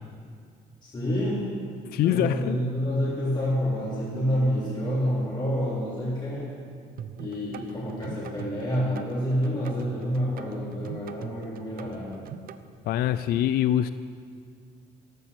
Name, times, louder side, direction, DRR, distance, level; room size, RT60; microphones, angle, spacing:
voice 1, 0.8-1.5 2.0-6.5 7.2-12.2, equal, 25° left, -7 dB, 3.5 m, -28 dB
voice 2, 1.9-2.6 12.9-13.9, left 11 dB, 65° left, 13 dB, 0.4 m, -24 dB
sound 1, 7.0-12.6, right 9 dB, 60° right, 0.7 m, -41 dB
13.5 x 12.5 x 6.7 m, 2.2 s
cardioid pair, 110°, 17 cm